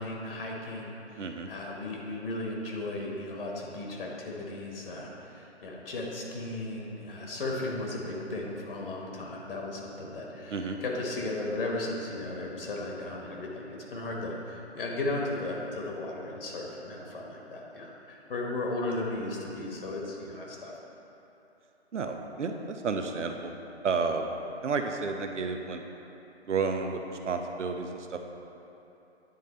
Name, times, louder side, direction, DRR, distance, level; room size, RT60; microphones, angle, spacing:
voice 1, 0.0-20.7, left 2 dB, 50° left, -1 dB, 1.1 m, -35 dB
voice 2, 1.2-1.5 10.5-10.8 21.9-23.5 23.8-24.3 24.6-25.8 26.5-28.2, right 4 dB, 85° right, 5 dB, 0.8 m, -31 dB
9.8 x 3.8 x 4.2 m, 3.0 s
hypercardioid pair, 155°, 35 cm